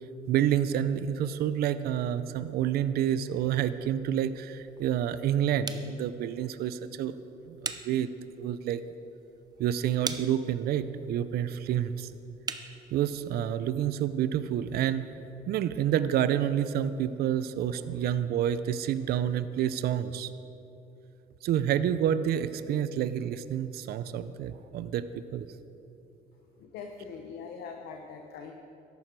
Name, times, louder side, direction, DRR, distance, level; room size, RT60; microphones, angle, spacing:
voice 1, 0.3-7.2 7.5-8.1 8.4-8.8 9.6-12.1 12.9-15.1 15.5-20.3 21.4-25.0 25.3-25.5, right 10 dB, 65° right, 13 dB, 0.5 m, -28 dB
sound 1, 3.6-13.4, right 5 dB, 25° right, 0.7 m, -44 dB
voice 2, 26.6-28.5, left 5 dB, 75° left, 3 dB, 1.0 m, -42 dB
14.0 x 11.0 x 4.6 m, 2.8 s
cardioid pair, 110°, 17 cm